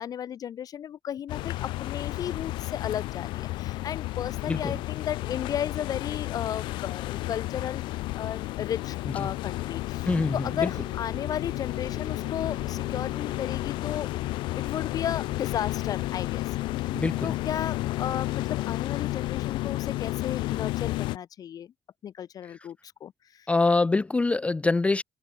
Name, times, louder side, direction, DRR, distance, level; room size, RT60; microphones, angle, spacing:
voice 1, 0.0-7.8 8.2-14.1 14.6-16.9 17.2-21.7 22.0-23.5, left 9 dB, 50° left, 1.4 m, -34 dB
sound 1, 1.3-21.2, left 18 dB, 80° left, 1.1 m, -32 dB
sound 2, 8.8-16.8, right 8 dB, 45° right, 5.7 m, -52 dB
voice 2, 10.1-10.7 16.9-17.3 23.5-25.0, left 3 dB, 15° left, 0.6 m, -24 dB
cardioid pair, 100°, 8 cm